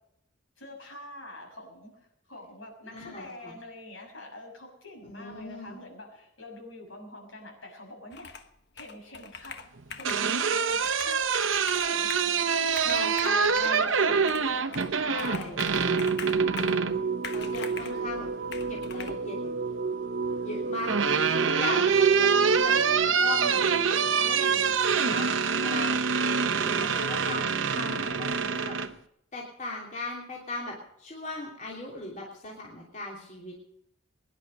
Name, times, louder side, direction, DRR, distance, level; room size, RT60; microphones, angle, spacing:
voice 1, 0.6-8.5 8.7-9.6 9.9-15.7 16.2-16.6 17.2-18.3 20.9-21.5 22.7-23.2 26.1-26.4, left 1 dB, 70° left, 1 dB, 6.3 m, -46 dB
voice 2, 2.9-3.5 5.0-5.8 12.8-14.3 15.0-15.6 17.3-18.3 18.7-19.5 20.4-20.9 21.3-22.7 23.2-26.0 26.4-28.8 29.3-33.5, left 2 dB, 35° left, -3 dB, 3.0 m, -38 dB
Computer keyboard, 8.1-8.5 8.8-10.3 10.7-12.3 12.7-13.7 14.3-14.9 15.2-16.8 17.2-18.0 18.5-19.1, left 6 dB, 55° left, 1.3 m, -42 dB
sound 1, 9.8-17.0 18.5-19.2 20.4-28.9, right 6 dB, 70° right, 1.0 m, -26 dB
sound 2, 15.7-28.3, right 5 dB, 45° right, 0.8 m, -32 dB
22.0 x 11.0 x 5.3 m, 0.76 s
head